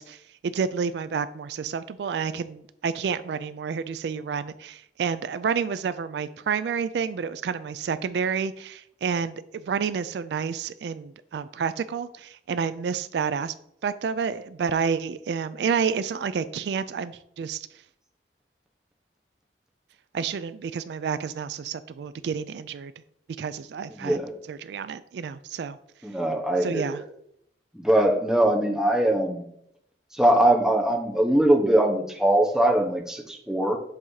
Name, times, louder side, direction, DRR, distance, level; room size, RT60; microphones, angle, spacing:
voice 1, 0.0-13.5 13.8-17.7 20.1-22.9 23.4-24.2 24.5-25.8 26.6-27.0, right 6 dB, 75° right, 14 dB, 0.3 m, -29 dB
voice 2, 26.0-27.0 27.7-29.5 30.1-33.8, right 1 dB, 5° right, 1 dB, 0.9 m, -22 dB
7.7 x 2.8 x 4.7 m, 0.72 s
head